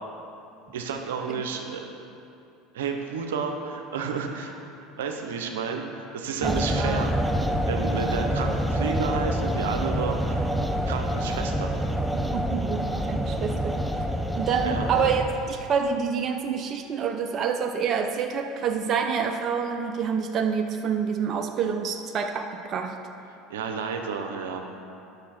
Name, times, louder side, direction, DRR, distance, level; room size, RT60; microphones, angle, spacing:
voice 1, 0.7-1.8 2.7-4.5 5.0-7.1 7.7-10.5 10.8-11.8 14.6-14.9 23.5-24.6, right 6 dB, 85° right, 4 dB, 0.8 m, -31 dB
sound 1, 6.4-15.6, equal, ahead, 0.6 m, -27 dB
voice 2, 6.4-7.0 12.3-13.8 14.3-23.0, right 6 dB, 45° right, 5 dB, 0.6 m, -27 dB
9.9 x 6.7 x 4.3 m, 2.7 s
hypercardioid pair, 85°, 0 cm